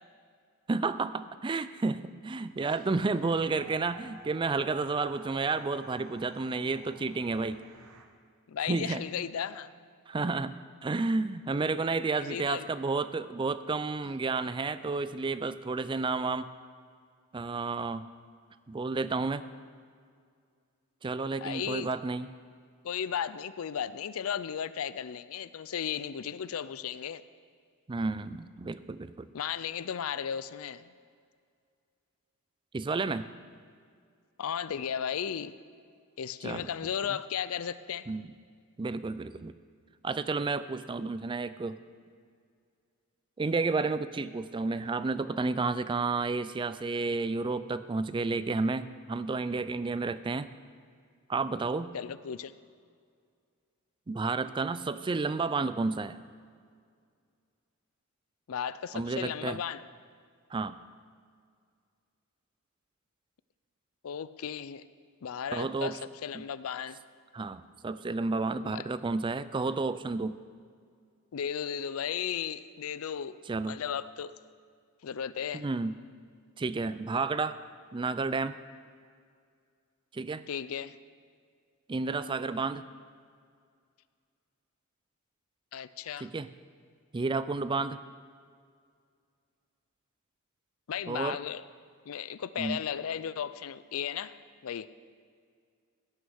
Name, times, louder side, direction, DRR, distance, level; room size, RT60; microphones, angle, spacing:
voice 1, 0.7-7.6 8.7-9.0 10.1-16.5 17.3-18.1 18.7-19.5 21.0-22.3 27.9-29.3 32.7-33.3 36.4-36.7 38.1-38.3 38.8-39.5 40.0-41.8 43.4-50.5 51.3-51.9 54.1-56.2 58.9-59.6 60.5-60.8 65.5-66.0 66.3-66.4 67.3-70.4 73.5-73.8 75.5-76.0 76.6-77.6 77.9-78.6 80.1-80.4 81.9-82.8 86.2-86.5 87.1-88.0 91.1-91.4 92.6-92.8, right 3 dB, 20° right, 14 dB, 0.4 m, -31 dB
sound 1, 2.6-8.1, right 3 dB, 70° right, 1.1 m, -51 dB
voice 2, 8.5-9.7 12.2-12.7 21.4-21.9 22.8-27.2 29.3-30.9 34.4-35.5 36.2-38.1 51.9-52.5 58.5-59.8 64.0-64.8 65.2-67.0 68.6-68.8 71.3-73.4 73.7-74.3 75.0-75.7 80.5-81.0 85.7-86.3 90.9-91.6 92.1-94.4 94.6-94.9, left 8 dB, 70° left, 15 dB, 0.4 m, -35 dB
16.5 x 6.5 x 6.4 m, 2.1 s
head